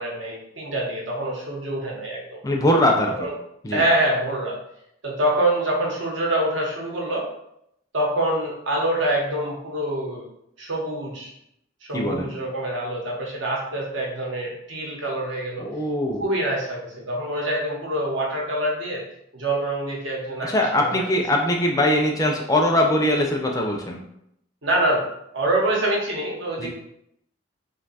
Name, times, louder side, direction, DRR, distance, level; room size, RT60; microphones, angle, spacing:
voice 1, 0.0-2.4 3.2-3.3 3.7-4.6 5.0-7.3 7.9-10.2 10.6-11.3 11.9-15.7 16.2-19.0 19.3-21.0 24.6-26.7, right 1 dB, 80° right, -2 dB, 0.9 m, -25 dB
voice 2, 2.4-3.3 3.6-3.8 11.9-12.3 15.6-16.2 20.4-24.0 26.6-26.7, left 1 dB, 15° left, 1 dB, 0.3 m, -21 dB
2.6 x 2.2 x 3.9 m, 0.77 s
head